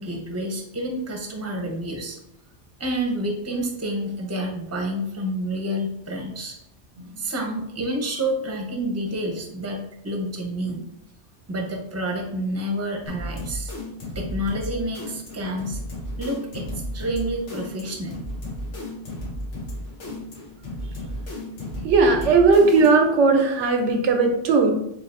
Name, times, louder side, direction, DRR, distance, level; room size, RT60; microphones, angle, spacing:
voice 1, 0.0-2.2 2.8-6.6 7.2-10.9 11.5-13.7 14.1-15.8 16.2-16.7 16.9-18.2, right 1 dB, 15° right, 1 dB, 0.7 m, -29 dB
sound 1, 13.1-23.2, left 1 dB, 90° left, 1.5 m, -34 dB
voice 2, 21.8-24.7, right 4 dB, 85° right, 4 dB, 1.0 m, -17 dB
7.3 x 2.8 x 2.5 m, 0.79 s
omnidirectional pair, 1.2 m